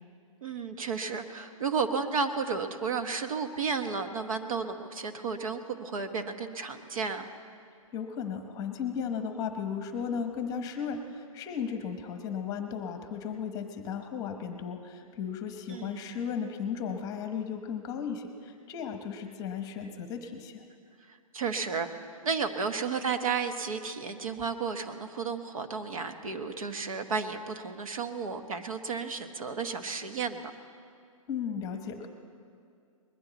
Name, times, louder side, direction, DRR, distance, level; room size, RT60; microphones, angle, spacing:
voice 1, 0.4-7.3 15.7-16.2 21.1-21.9 22.2-30.5, right 5 dB, 70° right, 7 dB, 1.3 m, -33 dB
voice 2, 7.9-20.6 31.3-32.1, left 7 dB, 20° left, 6 dB, 1.0 m, -35 dB
20.5 x 14.5 x 4.1 m, 2.3 s
hypercardioid pair, 145°, 18 cm